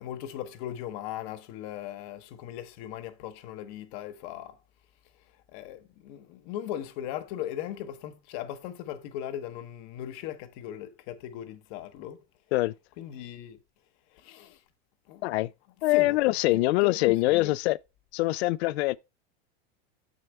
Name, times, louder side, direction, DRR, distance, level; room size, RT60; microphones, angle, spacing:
voice 1, 0.0-4.6 5.5-12.2 13.0-13.6 14.1-14.6 15.1-15.2 15.9-17.5, left 11 dB, 45° left, 0.9 m, -38 dB
voice 2, 15.8-17.8 18.1-19.0, left 19 dB, 75° left, 0.5 m, -24 dB
7.0 x 6.5 x 3.2 m
supercardioid pair, 165°, 32 cm